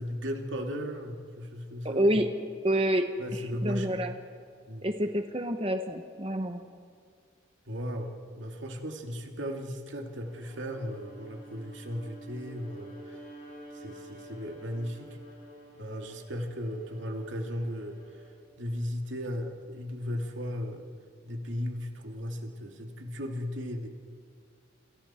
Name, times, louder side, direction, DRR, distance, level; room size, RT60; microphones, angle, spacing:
voice 1, 0.0-2.2 3.2-4.1 4.7-4.9 7.7-13.2 13.7-15.2 15.8-18.0 18.6-20.9 21.2-23.9, equal, 90° right, 3 dB, 2.4 m, -36 dB
voice 2, 1.8-2.3 2.6-4.1 4.8-6.6, equal, 30° right, 6 dB, 1.1 m, -28 dB
Bowed string instrument, 10.1-18.5, right 1 dB, 40° left, 6.7 m, -49 dB
28.5 x 27.0 x 4.4 m, 2.2 s
head